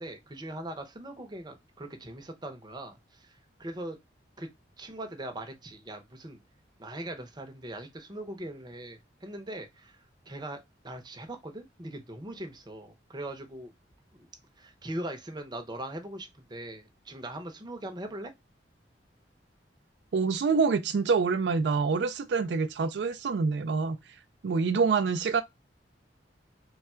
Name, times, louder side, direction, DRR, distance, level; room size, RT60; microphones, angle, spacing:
voice 1, 0.0-3.3 3.6-4.0 4.4-4.5 4.8-6.4 6.8-13.7 14.1-14.3 14.6-18.3, right 1 dB, 25° right, 0.7 m, -40 dB
voice 2, 20.1-24.0 24.4-25.4, right 5 dB, 75° right, 0.4 m, -26 dB
3.3 x 2.3 x 4.2 m
head